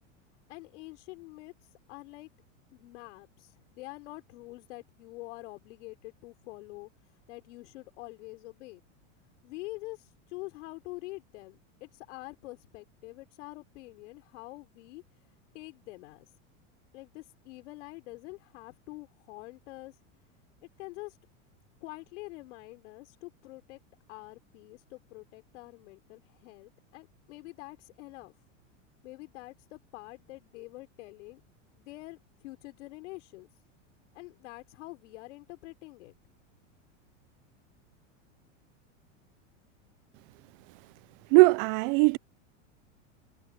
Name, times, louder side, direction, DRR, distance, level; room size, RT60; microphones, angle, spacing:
voice 1, 0.5-1.5 1.9-2.3 2.7-6.9 7.3-8.8 9.4-15.0 15.5-16.3 16.9-19.9 20.8-21.2 21.8-23.8 24.1-28.4 29.0-31.4 31.7-33.5 34.1-36.1, left 21 dB, 65° left, 4.2 m, -46 dB
voice 2, 41.3-42.2, right 26 dB, 45° right, 0.5 m, -20 dB
supercardioid pair, 135°, 38 cm